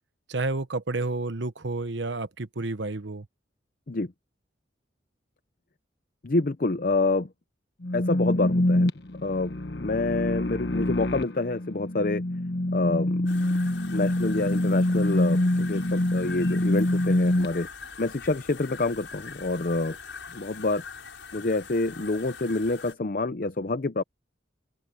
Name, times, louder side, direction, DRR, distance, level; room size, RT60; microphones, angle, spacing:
voice 1, 0.3-3.3, right 2 dB, 75° right, 1.1 m, -30 dB
voice 2, 6.2-7.3 7.9-8.9 9.2-12.2 12.7-13.5 13.9-17.7 18.0-20.0 20.3-20.8 21.3-24.0, left 2 dB, 45° left, 0.6 m, -27 dB
sound 1, 7.8-17.5, left 1 dB, 60° left, 1.4 m, -25 dB
sound 2, 13.3-22.9, left 5 dB, 85° left, 6.6 m, -43 dB
open air
head